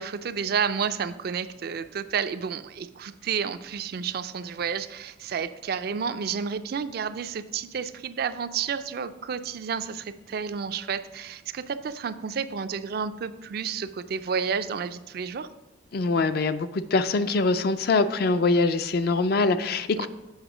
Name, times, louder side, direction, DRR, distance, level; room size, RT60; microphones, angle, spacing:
voice 1, 0.0-15.5 20.0-20.1, right 6 dB, 50° right, 12 dB, 0.3 m, -31 dB
voice 2, 15.9-20.1, left 3 dB, 50° left, 11 dB, 0.4 m, -23 dB
8.0 x 4.9 x 4.9 m, 1.1 s
head